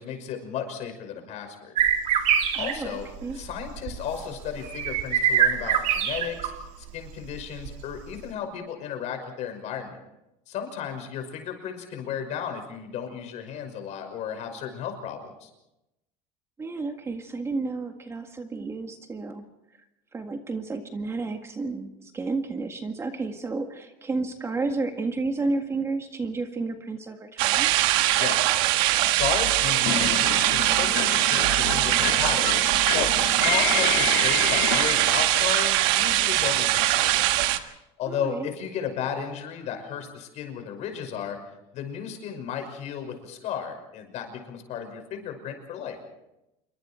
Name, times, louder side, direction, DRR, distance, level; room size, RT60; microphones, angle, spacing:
voice 1, 0.0-1.8 2.6-3.1 3.3-6.5 6.9-10.0 10.5-15.5 28.1-28.6 29.0-32.6 32.9-37.6 38.0-41.4 41.7-46.0, left 8 dB, 55° left, 5 dB, 5.8 m, -34 dB
sound 1, 1.8-6.6 6.9-7.9, right 8 dB, 55° right, 2.9 m, -25 dB
voice 2, 2.5-3.4 16.6-19.5 20.1-27.7 38.1-38.5, right 3 dB, 20° right, 5 dB, 1.8 m, -31 dB
sound 2, 27.4-37.6, right 15 dB, 80° right, 1.5 m, -22 dB
sound 3, 29.9-35.3, left 11 dB, 75° left, 2.1 m, -30 dB
28.0 x 23.5 x 4.5 m, 0.89 s
cardioid pair, 140°, 14 cm